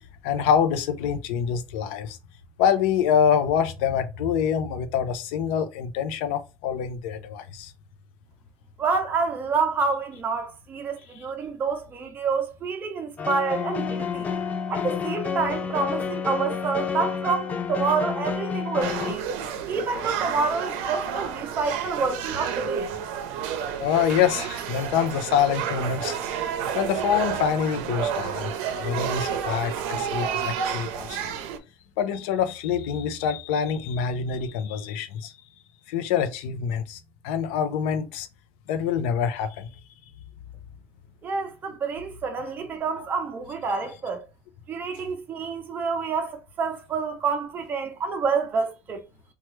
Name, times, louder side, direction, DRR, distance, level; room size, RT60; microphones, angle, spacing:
voice 1, 0.2-2.2 2.6-7.7 23.8-28.5 28.8-31.4 32.0-35.3 35.9-38.3 38.7-39.7, left 8 dB, 85° left, 0.6 m, -26 dB
voice 2, 8.8-14.3 14.7-19.3 19.7-22.9 41.2-44.3 44.7-49.0, right 4 dB, 30° right, 0.6 m, -28 dB
sound 1, 13.2-19.1, left 6 dB, 25° left, 0.4 m, -29 dB
sound 2, 18.8-31.6, right 8 dB, 80° right, 0.5 m, -30 dB
3.0 x 2.3 x 3.2 m
cardioid pair, 135°, 6 cm